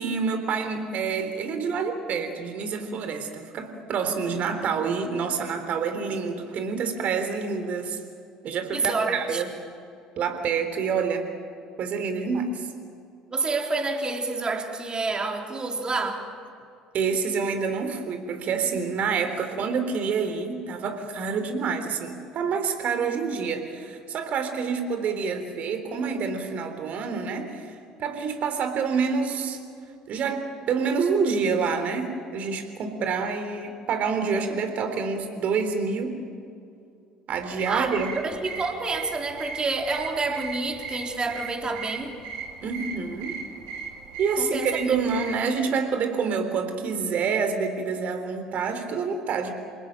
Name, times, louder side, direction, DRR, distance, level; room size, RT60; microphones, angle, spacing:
voice 1, 0.0-8.0 8.4-9.5 10.2-11.3 11.8-12.7 16.9-27.7 28.0-29.6 30.1-30.4 30.7-36.2 37.3-38.1 42.6-43.4 44.2-49.5, right 5 dB, 45° right, 7 dB, 3.6 m, -27 dB
voice 2, 8.7-9.4 13.3-16.3 37.7-42.2 44.4-44.8, right 3 dB, 25° right, 3 dB, 3.8 m, -28 dB
sound 1, 37.3-45.4, right 5 dB, 65° right, 4.6 m, -38 dB
28.0 x 19.5 x 9.3 m, 2.4 s
figure-of-eight pair, 60°, 3 cm